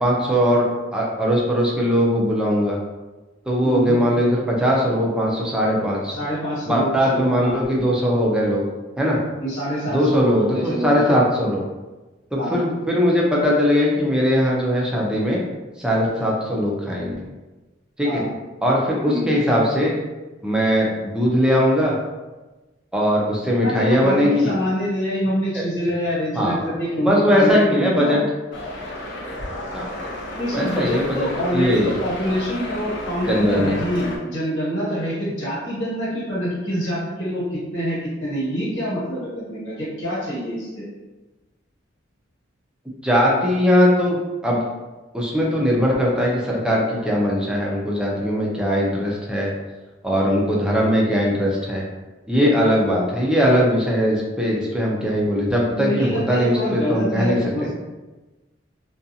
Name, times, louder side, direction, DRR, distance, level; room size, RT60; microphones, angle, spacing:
voice 1, 0.0-2.8 3.5-6.2 6.7-8.6 9.0-9.2 9.9-11.6 12.3-15.4 15.8-17.1 18.0-18.2 18.6-19.9 20.4-21.9 22.9-24.5 25.5-25.6 26.3-26.6 27.0-28.2 29.7-29.9 30.5-31.9 33.3-33.8 43.0-44.2 44.4-44.6 45.1-49.5 50.0-51.8 52.3-57.7, equal, 5° right, -4 dB, 0.4 m, -20 dB
voice 2, 3.6-4.0 6.1-7.6 9.4-11.2 12.4-12.6 18.0-18.3 19.1-19.3 23.6-28.2 30.4-40.9 55.7-57.7, equal, 85° left, -8 dB, 1.3 m, -26 dB
sound 1, 28.5-34.2, left 1 dB, 65° left, 0.5 m, -32 dB
2.4 x 2.3 x 2.7 m, 1.2 s
head